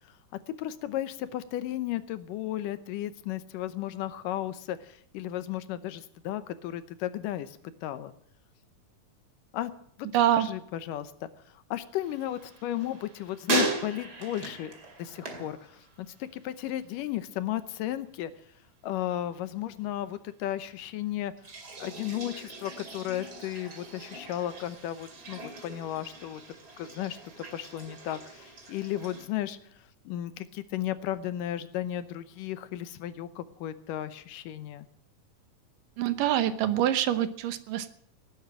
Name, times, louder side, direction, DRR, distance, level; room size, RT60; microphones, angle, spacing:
voice 1, 0.6-8.1 9.5-9.7 10.0-10.1 10.3-14.7 15.0-15.8 16.2-18.3 18.8-21.3 21.8-26.4 26.8-27.2 27.5-29.6 30.1-34.9, left 12 dB, 75° left, 13 dB, 2.4 m, -34 dB
voice 2, 10.1-10.5 36.0-37.9, right 11 dB, 75° right, 12 dB, 2.6 m, -25 dB
sound 1, 12.0-16.4 16.7-17.2 21.4-29.3, right 2 dB, 30° right, 2.5 m, -38 dB
18.0 x 9.4 x 7.8 m, 0.65 s
omnidirectional pair, 3.9 m